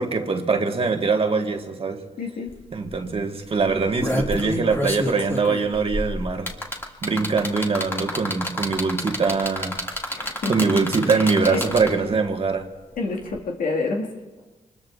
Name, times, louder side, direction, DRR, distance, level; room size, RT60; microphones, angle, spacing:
voice 1, 0.0-2.0 2.7-6.5 7.0-9.8 10.5-12.7, right 4 dB, 45° right, 1.6 m, -23 dB
voice 2, 2.2-2.5 10.1-10.7 11.1-11.6 13.0-14.1, left 3 dB, 85° left, 2.0 m, -28 dB
sound 1, 2.5-2.6 2.9-3.1 3.7-12.1 13.3-13.4, left 1 dB, 15° left, 2.2 m, -28 dB
25.5 x 21.0 x 2.5 m
cardioid pair, 70°, 14 cm